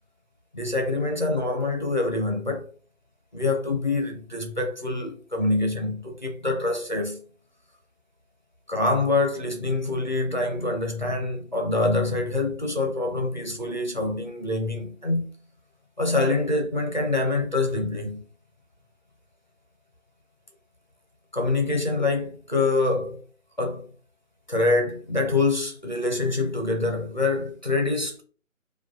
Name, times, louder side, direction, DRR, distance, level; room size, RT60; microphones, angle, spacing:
voice 1, 0.5-2.7 3.3-7.2 8.7-15.3 16.0-18.2 21.3-23.2 23.6-23.9 24.5-28.2, left 2 dB, 35° left, 0.5 m, -25 dB
4.8 x 2.3 x 2.7 m
hypercardioid pair, 180°, 42 cm